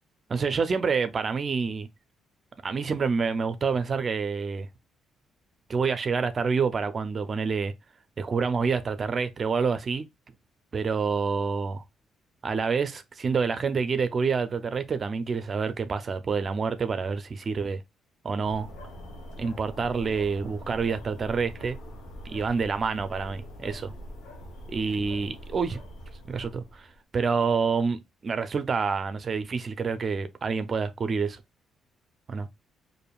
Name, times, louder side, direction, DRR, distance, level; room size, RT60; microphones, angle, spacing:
voice 1, 0.3-1.9 2.6-4.7 5.7-7.7 8.2-10.0 10.7-11.8 12.4-17.8 18.2-18.7 19.4-21.8 22.2-23.9 24.7-25.8 26.3-26.9 27.1-31.4 32.3-32.5, right 5 dB, 40° right, 0.5 m, -27 dB
sound 1, 18.4-27.0, equal, 90° left, 1.1 m, -43 dB
5.0 x 2.6 x 2.3 m
cardioid pair, 90°, 0 cm